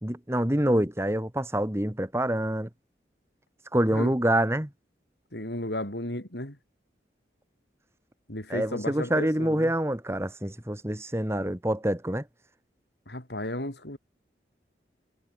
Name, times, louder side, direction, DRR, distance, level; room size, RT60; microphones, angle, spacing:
voice 1, 0.0-2.7 3.7-4.7 8.5-12.2, right 1 dB, 15° right, 1.8 m, -26 dB
voice 2, 5.3-6.6 8.3-9.7 13.1-14.0, left 1 dB, 65° left, 5.4 m, -34 dB
head